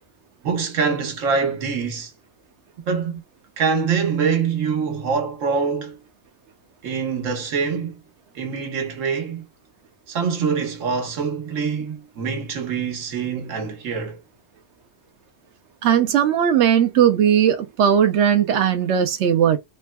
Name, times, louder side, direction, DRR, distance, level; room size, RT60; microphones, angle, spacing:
voice 1, 0.4-2.1 2.9-3.2 3.6-6.0 6.8-8.0 8.3-9.4 10.1-14.2, right 5 dB, 90° right, 1.2 m, -24 dB
voice 2, 15.8-19.6, right 9 dB, 70° right, 0.8 m, -18 dB
3.4 x 2.2 x 2.2 m
omnidirectional pair, 1.3 m